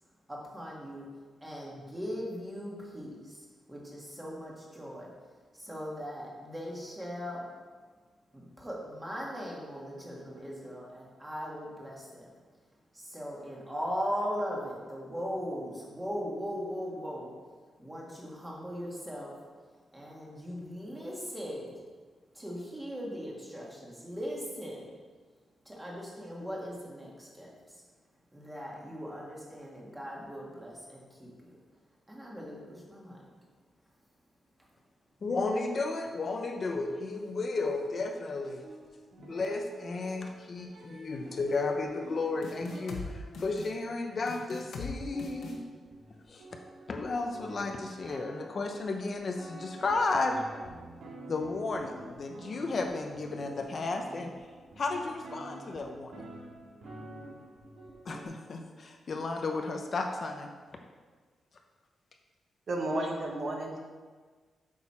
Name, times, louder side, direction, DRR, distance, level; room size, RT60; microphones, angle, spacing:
voice 1, 0.3-1.1 1.4-5.1 5.5-7.4 8.3-12.3 12.9-17.3 17.8-19.3 19.9-21.7 22.3-24.9 25.7-27.8 28.3-31.6 32.1-33.2, equal, 10° right, -3 dB, 1.7 m, -39 dB
voice 2, 35.2-38.6 39.2-43.0 43.4-45.6 46.3-46.4 46.9-50.4 51.3-54.3 54.8-56.2 58.1-60.5, left 3 dB, 40° left, 4 dB, 0.6 m, -33 dB
sound 1, 38.6-44.1 44.8-44.9 45.1-58.3, right 2 dB, 70° right, 2.0 m, -49 dB
sound 2, 42.4-43.1 43.3-43.7 44.3-44.9 45.2-45.6, left 4 dB, 75° left, 1.1 m, -40 dB
voice 3, 62.7-63.8, right 1 dB, 50° right, 1 dB, 1.1 m, -32 dB
8.3 x 6.2 x 4.3 m, 1.5 s
wide cardioid pair, 165°, 0 cm